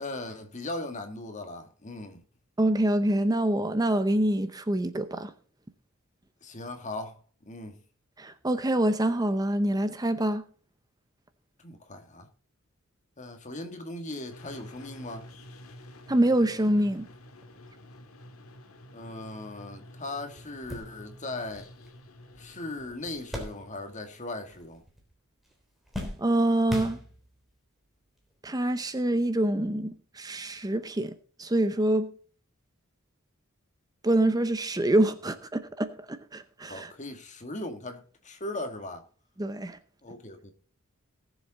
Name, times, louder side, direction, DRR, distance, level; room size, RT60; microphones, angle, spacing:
voice 1, 0.0-2.2 6.4-7.8 11.6-12.3 13.2-15.3 18.9-21.7 22.4-24.8 36.7-39.0 40.0-40.5, left 2 dB, 35° left, 1.7 m, -38 dB
voice 2, 2.6-5.3 8.2-10.4 16.1-17.1 26.2-27.0 28.4-31.1 31.4-32.1 34.0-36.9 39.4-39.8, right 1 dB, 20° right, 0.7 m, -26 dB
sound 1, 14.3-24.7, left 1 dB, 90° left, 1.7 m, -50 dB
sound 2, 19.9-20.0 20.4-24.1 24.4-25.1 25.4-27.5 28.2-28.3 29.6-29.8, left 1 dB, ahead, 3.5 m, -40 dB
18.5 x 7.2 x 3.9 m
head